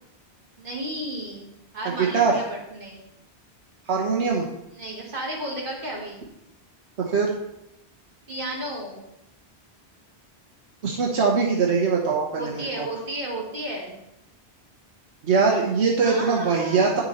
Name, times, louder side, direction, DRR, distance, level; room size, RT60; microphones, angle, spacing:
voice 1, 0.6-3.1 4.7-6.2 8.3-9.0 12.3-14.0 16.0-17.0, right 1 dB, 50° right, -3 dB, 2.5 m, -33 dB
voice 2, 1.8-2.4 3.9-4.5 7.0-7.3 10.8-12.9 15.2-17.0, right 5 dB, 85° right, -1 dB, 1.3 m, -22 dB
9.5 x 6.9 x 4.2 m, 0.86 s
omnidirectional pair, 1.1 m